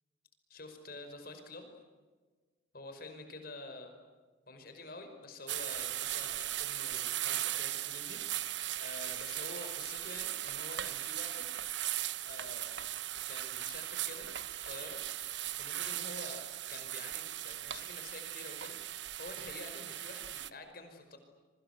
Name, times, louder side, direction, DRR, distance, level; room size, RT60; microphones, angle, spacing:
voice 1, 0.5-1.7 2.7-3.9 4.5-11.5 12.2-12.8 13.3-14.3 14.5-15.0 15.5-21.2, left 2 dB, 50° left, 6 dB, 5.2 m, -48 dB
sound 1, 5.5-20.5, right 13 dB, 65° right, 1.0 m, -38 dB
28.5 x 24.5 x 8.1 m, 1.4 s
head